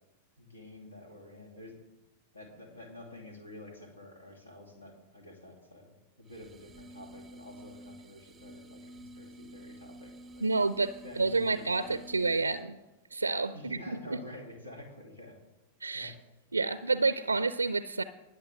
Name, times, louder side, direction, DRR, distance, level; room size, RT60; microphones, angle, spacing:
voice 1, 0.4-1.8 2.3-5.9 6.2-10.5 11.0-12.7 13.5-15.4 15.9-16.2, left 1 dB, 75° left, 2.4 m, -49 dB
sound 1, 6.3-12.8, equal, 15° right, 0.6 m, -51 dB
voice 2, 10.4-12.7 13.1-13.8 14.1-14.2 15.8-16.1 16.5-18.0, right 3 dB, 80° right, 0.4 m, -29 dB
19.5 x 7.8 x 3.5 m
figure-of-eight pair, 90°, 0 cm